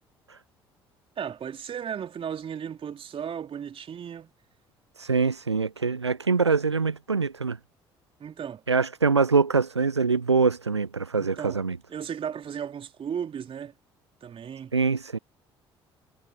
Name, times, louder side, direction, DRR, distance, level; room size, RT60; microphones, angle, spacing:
voice 1, 1.2-4.3 8.2-8.6 11.2-11.6 11.9-13.7 14.2-14.7, right 8 dB, 40° right, 2.9 m, -35 dB
voice 2, 5.0-7.6 8.7-11.8 14.7-15.2, right 4 dB, 90° right, 0.4 m, -24 dB
figure-of-eight pair, 50°, 14 cm